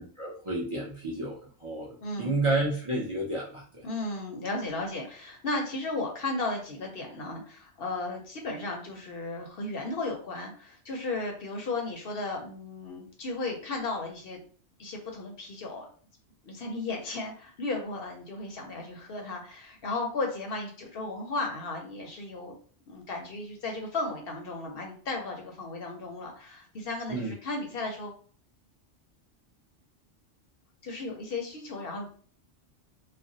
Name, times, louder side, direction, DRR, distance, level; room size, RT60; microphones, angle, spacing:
voice 1, 0.2-3.8 27.1-27.3, right 2 dB, 35° right, -4 dB, 0.5 m, -31 dB
voice 2, 2.0-2.4 3.8-14.4 14.8-15.9 16.4-22.5 22.9-28.1 30.8-32.1, left 2 dB, 60° left, 1 dB, 0.8 m, -35 dB
2.5 x 2.1 x 3.8 m, 0.43 s
omnidirectional pair, 1.2 m